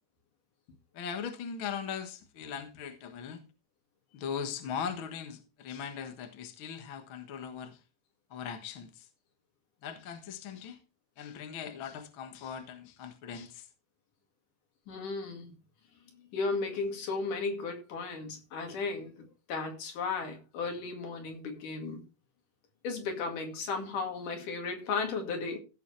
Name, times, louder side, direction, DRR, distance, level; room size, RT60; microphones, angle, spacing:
voice 1, 0.9-3.4 4.1-7.8 8.3-9.1 9.8-10.8 11.2-13.7, left 7 dB, 50° left, 1.8 m, -39 dB
voice 2, 14.9-15.6 16.3-22.0 22.8-25.6, left 4 dB, 75° left, 3.7 m, -35 dB
15.5 x 6.9 x 3.3 m
omnidirectional pair, 3.7 m